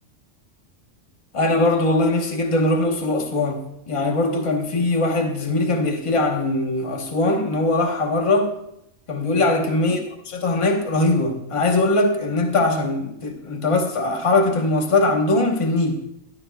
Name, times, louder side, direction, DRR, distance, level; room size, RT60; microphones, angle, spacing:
voice 1, 1.3-3.6 3.9-8.5 9.1-10.0 10.3-16.1, left 2 dB, 25° left, 0 dB, 1.1 m, -21 dB
14.5 x 12.0 x 2.2 m, 0.81 s
omnidirectional pair, 1.3 m